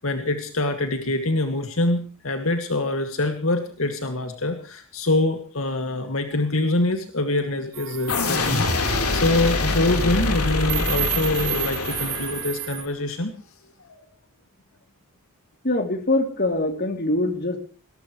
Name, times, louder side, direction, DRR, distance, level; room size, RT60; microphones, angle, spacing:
voice 1, 0.0-13.3 13.9-14.0, left 2 dB, 70° left, 6 dB, 2.3 m, -25 dB
sound 1, 7.7-12.8, right 13 dB, 65° right, 3.3 m, -32 dB
sound 2, 8.1-12.7, left 3 dB, 90° left, 4.0 m, -25 dB
voice 2, 15.6-17.6, left 2 dB, 45° left, 6 dB, 3.0 m, -23 dB
21.0 x 18.5 x 3.2 m, 0.41 s
head